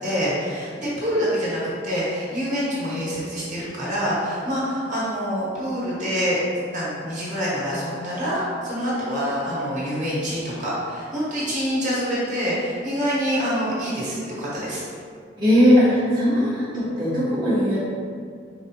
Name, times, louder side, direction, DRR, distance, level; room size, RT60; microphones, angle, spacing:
voice 1, 0.0-6.4 6.7-14.8, equal, 40° right, -8 dB, 1.3 m, -26 dB
voice 2, 15.4-17.8, equal, 25° right, -14 dB, 0.9 m, -19 dB
4.9 x 3.4 x 2.8 m, 2.2 s
head